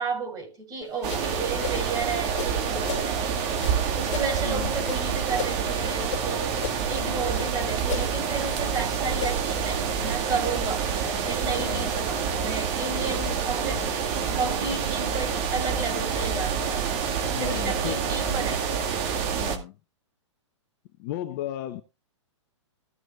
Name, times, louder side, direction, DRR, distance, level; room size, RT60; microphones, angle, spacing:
voice 1, 0.0-3.2 4.0-10.9 11.2-13.9 14.4-17.0 17.4-18.7, right 4 dB, 25° right, 5.8 m, -32 dB
sound 1, 0.8-3.1 3.5-6.3 6.5-7.5 7.8-9.6, left 7 dB, 65° left, 2.0 m, -36 dB
sound 2, 1.0-19.6, right 7 dB, 40° right, 2.1 m, -27 dB
voice 2, 11.6-11.9 17.3-18.1 19.4-19.8 21.0-21.8, left 13 dB, 40° left, 1.0 m, -34 dB
14.5 x 6.2 x 4.0 m
hypercardioid pair, 130°, 16 cm